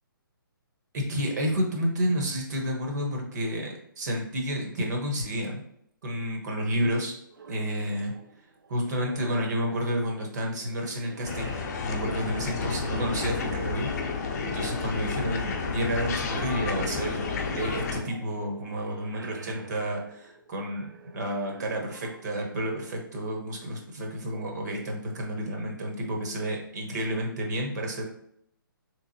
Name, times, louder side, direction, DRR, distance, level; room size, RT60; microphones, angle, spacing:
voice 1, 0.9-5.6 6.0-7.1 7.5-8.1 8.7-11.5 11.8-17.2 17.5-28.0, equal, 50° right, 1 dB, 0.9 m, -30 dB
sound 1, 7.3-14.3 14.6-23.0, right 3 dB, 70° right, 0.5 m, -48 dB
sound 2, 11.2-18.0, left 4 dB, 45° left, 0.6 m, -31 dB
Bowed string instrument, 16.5-20.1, right 5 dB, 25° right, 0.6 m, -49 dB
3.4 x 3.1 x 2.6 m, 0.69 s
figure-of-eight pair, 140°, 12 cm